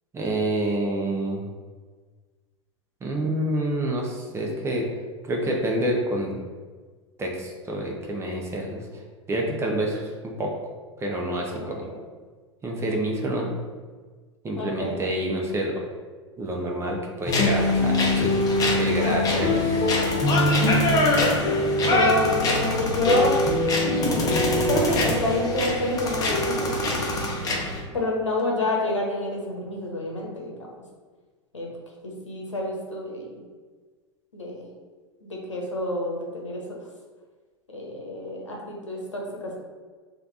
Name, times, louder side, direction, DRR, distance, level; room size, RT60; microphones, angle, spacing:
voice 1, 0.1-1.5 3.0-4.9 5.2-6.3 7.2-8.8 9.3-10.5 11.0-12.0 12.6-13.5 14.4-15.8 16.4-18.3 18.8-19.9, right 1 dB, 15° right, 0 dB, 0.6 m, -28 dB
voice 2, 14.6-15.0 19.0-19.5 20.9-21.3 21.9-23.4 23.8-24.4 24.7-26.9 27.9-30.7 31.5-31.7 32.3-33.3 34.3-34.7 35.2-36.8 37.7-39.6, left 1 dB, 80° left, -2 dB, 0.9 m, -28 dB
sound 1, 17.3-27.8, left 2 dB, 25° left, 0.7 m, -22 dB
3.3 x 2.5 x 3.9 m, 1.4 s
figure-of-eight pair, 85°, 16 cm